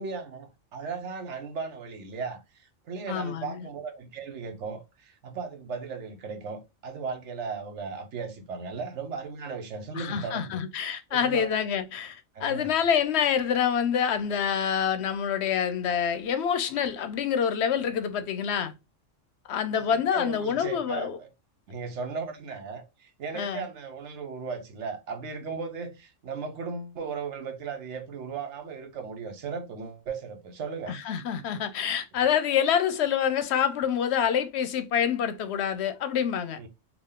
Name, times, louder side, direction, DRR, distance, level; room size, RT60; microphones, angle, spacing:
voice 1, 0.0-10.6 11.1-11.5 12.3-12.7 20.1-21.3 21.7-31.0 36.6-36.7, right 5 dB, 70° right, 1.1 m, -36 dB
voice 2, 3.1-3.7 10.0-18.7 19.5-21.2 23.3-23.7 30.9-36.6, left 8 dB, 65° left, 0.8 m, -27 dB
3.7 x 2.3 x 3.6 m
omnidirectional pair, 1.3 m